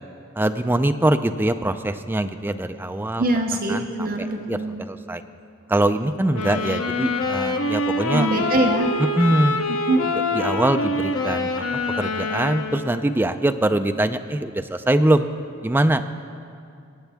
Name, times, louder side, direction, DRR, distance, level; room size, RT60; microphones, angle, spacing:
voice 1, 0.4-3.2 3.7-5.2 5.7-8.3 9.2-9.6 10.3-11.6 12.0-15.3 15.6-16.0, right 1 dB, 10° right, 8 dB, 0.4 m, -23 dB
voice 2, 3.2-4.8 8.1-8.9 9.9-10.0, right 2 dB, 45° right, 4 dB, 0.8 m, -23 dB
sound 1, 6.3-13.1, left 2 dB, 70° left, 0.9 m, -25 dB
22.5 x 9.1 x 3.5 m, 2.4 s
head